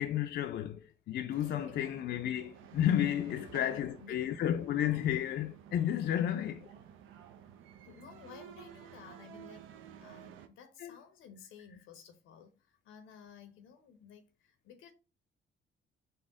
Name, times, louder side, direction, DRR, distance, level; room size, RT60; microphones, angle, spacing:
voice 1, 0.0-6.6 10.8-10.9, left 11 dB, 60° left, 0.4 m, -32 dB
sound 1, 1.3-10.5, right 9 dB, 85° right, 0.5 m, -53 dB
voice 2, 1.4-1.8 3.3-4.2 6.6-6.7 7.8-14.9, left 7 dB, 90° left, 0.8 m, -54 dB
4.0 x 2.1 x 3.6 m
cardioid pair, 90°, 20 cm